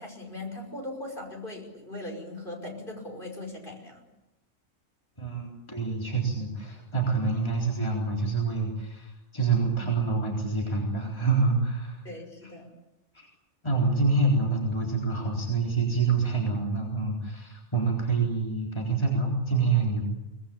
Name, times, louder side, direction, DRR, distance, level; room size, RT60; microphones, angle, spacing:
voice 1, 0.0-4.0 12.0-12.7, left 2 dB, 40° left, 2 dB, 5.8 m, -39 dB
voice 2, 5.2-12.0 13.1-13.3 13.6-20.0, right 4 dB, 20° left, -1 dB, 4.0 m, -27 dB
24.5 x 20.0 x 8.9 m, 0.95 s
omnidirectional pair, 1.4 m